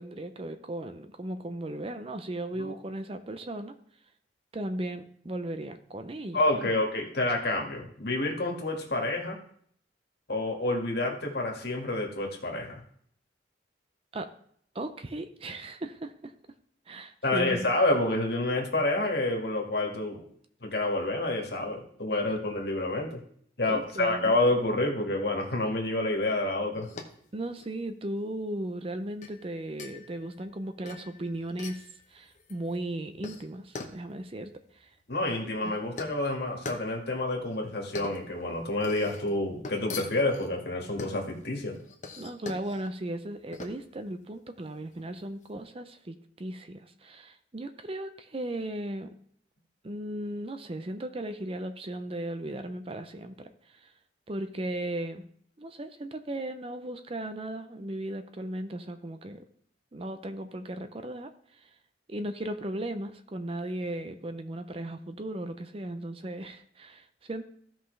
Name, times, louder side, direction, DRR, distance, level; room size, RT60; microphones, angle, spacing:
voice 1, 0.0-3.7 4.5-6.7 14.1-14.3 14.7-16.3 16.9-17.7 23.7-24.4 27.3-34.5 34.8-34.9 35.6-35.7 42.2-49.1 49.8-53.9 54.3-55.2 55.6-59.4 59.9-61.3 62.1-67.4, right 1 dB, 30° right, 9 dB, 0.6 m, -36 dB
voice 2, 6.3-9.4 10.3-12.8 17.2-20.2 20.6-23.2 23.6-26.9 35.1-41.8, left 2 dB, 60° left, 1 dB, 1.9 m, -28 dB
sound 1, 26.7-45.5, left 3 dB, 40° left, 1.0 m, -45 dB
15.5 x 5.7 x 3.3 m, 0.64 s
head